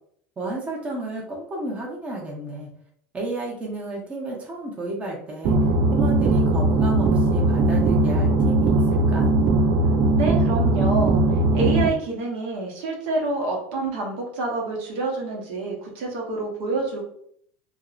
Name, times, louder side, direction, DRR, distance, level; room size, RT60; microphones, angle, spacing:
voice 1, 0.4-2.7 3.1-5.6 5.9-9.3, right 2 dB, 20° right, -2 dB, 0.7 m, -32 dB
sound 1, 5.4-11.9, right 2 dB, 50° right, 0.3 m, -19 dB
voice 2, 10.1-11.2 11.5-17.0, right 3 dB, 70° right, 0 dB, 0.7 m, -27 dB
2.5 x 2.0 x 2.4 m, 0.65 s
supercardioid pair, 120°, 6 cm